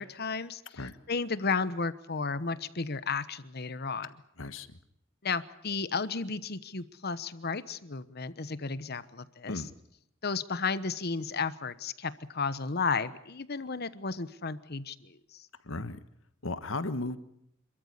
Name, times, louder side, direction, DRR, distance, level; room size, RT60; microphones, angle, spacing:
voice 1, 0.0-0.8 1.1-4.1 5.2-9.6 10.2-15.5, left 4 dB, 55° left, 14 dB, 1.1 m, -33 dB
voice 2, 4.4-4.8 9.5-9.7 15.6-16.0 16.4-17.2, left 2 dB, 75° left, 12 dB, 1.4 m, -35 dB
27.5 x 13.5 x 9.7 m, 0.77 s
head